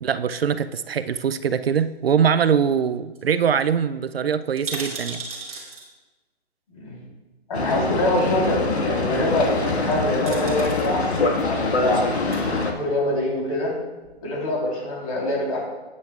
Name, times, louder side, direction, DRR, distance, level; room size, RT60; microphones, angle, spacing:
voice 1, 0.0-5.2, right 7 dB, 70° right, 12 dB, 0.5 m, -22 dB
sound 1, 1.8-2.5 2.9-3.0 3.1-3.3 3.6-3.7 4.4-5.9 7.0-7.1 9.7-9.9 10.3-10.9 12.0-12.4 13.1-13.8 14.0-14.1, right 4 dB, 35° right, 2.4 m, -36 dB
Boat Water vehicle, 7.5-12.7, left 3 dB, 85° left, 1.7 m, -24 dB
voice 2, 7.5-12.0 12.7-13.7 14.2-15.6, left 1 dB, 35° left, -2 dB, 3.5 m, -24 dB
13.0 x 9.6 x 2.4 m, 1.2 s
hypercardioid pair, 165°, 32 cm